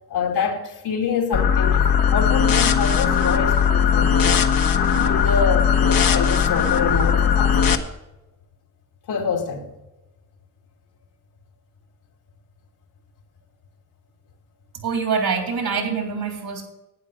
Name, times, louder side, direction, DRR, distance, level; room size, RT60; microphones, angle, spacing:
voice 1, 0.1-4.4 4.9-7.8 9.1-9.7, left 5 dB, 75° left, 1 dB, 2.6 m, -26 dB
sound 1, 1.3-7.7, left 7 dB, 60° left, 1.3 m, -18 dB
voice 2, 14.7-16.6, right 5 dB, 70° right, 2 dB, 3.8 m, -25 dB
11.5 x 9.2 x 6.5 m, 0.99 s
cardioid pair, 65°, 39 cm